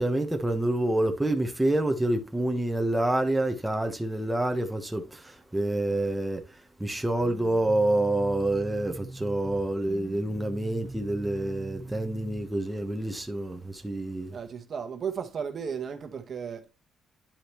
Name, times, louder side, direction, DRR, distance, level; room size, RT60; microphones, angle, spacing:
voice 1, 0.0-6.4 6.8-14.4, right 1 dB, 10° right, 1.1 m, -27 dB
sound 1, 7.2-12.5, right 2 dB, 30° right, 1.7 m, -42 dB
voice 2, 14.3-16.7, right 6 dB, 50° right, 1.3 m, -34 dB
10.5 x 4.9 x 3.0 m
cardioid pair, 90°, 0 cm